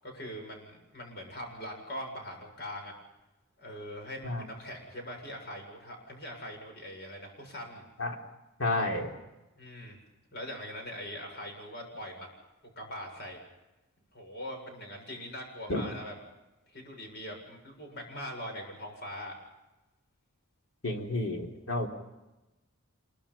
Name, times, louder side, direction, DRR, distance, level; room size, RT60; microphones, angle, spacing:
voice 1, 0.0-2.9 3.6-7.8 9.6-10.0 10.3-12.3 12.8-13.4 14.1-16.1 16.7-19.3, equal, 50° left, 3 dB, 7.4 m, -42 dB
voice 2, 8.6-9.1 15.7-15.9 20.8-21.9, left 2 dB, 65° left, 1 dB, 3.8 m, -30 dB
26.5 x 23.0 x 5.7 m, 1.0 s
head